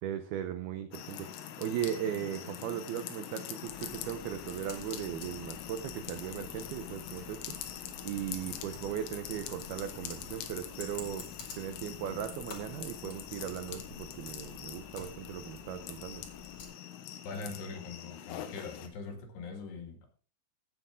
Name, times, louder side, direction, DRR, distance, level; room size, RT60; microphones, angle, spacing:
voice 1, 0.0-1.3 1.6-7.6 8.0-11.3 11.5-16.2, right 10 dB, 85° right, 8 dB, 2.2 m, -38 dB
sound 1, 0.9-18.9, left 10 dB, 90° left, 3.8 m, -44 dB
Computer keyboard, 3.6-16.7, left 4 dB, 45° left, 2.8 m, -50 dB
voice 2, 17.2-20.1, left 4 dB, 65° left, 4 dB, 4.0 m, -42 dB
17.0 x 7.9 x 3.7 m, 0.40 s
omnidirectional pair, 5.6 m